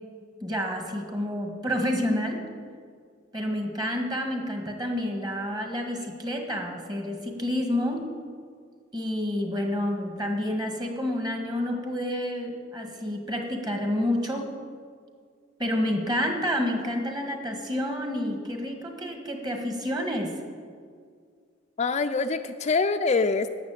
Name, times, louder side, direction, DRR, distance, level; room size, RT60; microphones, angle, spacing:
voice 1, 0.4-2.4 3.3-8.0 8.9-14.5 15.6-20.3, left 1 dB, 25° right, 3 dB, 1.8 m, -29 dB
voice 2, 21.8-23.5, left 4 dB, 35° left, 8 dB, 0.4 m, -24 dB
12.0 x 7.5 x 8.9 m, 2.1 s
head